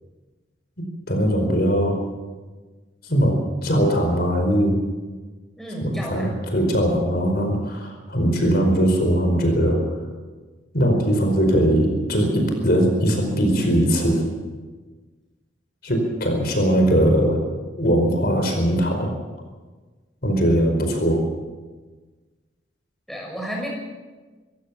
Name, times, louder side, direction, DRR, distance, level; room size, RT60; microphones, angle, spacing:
voice 1, 0.8-2.0 3.1-4.8 5.8-9.8 10.7-14.2 15.8-17.4 17.8-19.1 20.2-21.2, equal, 55° left, 4 dB, 4.8 m, -20 dB
voice 2, 5.6-6.3 23.1-23.7, equal, ahead, -1 dB, 6.4 m, -32 dB
25.0 x 15.5 x 7.2 m, 1.3 s
head